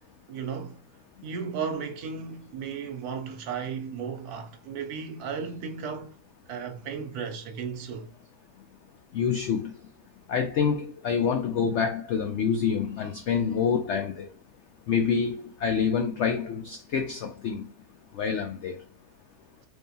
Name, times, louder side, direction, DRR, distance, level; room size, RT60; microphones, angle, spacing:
voice 1, 0.3-0.8 1.2-6.2 6.5-8.1, right 6 dB, 70° right, 1.1 m, -35 dB
voice 2, 9.1-9.7 10.3-14.3 14.9-17.7 18.1-18.8, left 6 dB, 90° left, 0.6 m, -27 dB
3.4 x 3.1 x 2.6 m
omnidirectional pair, 1.7 m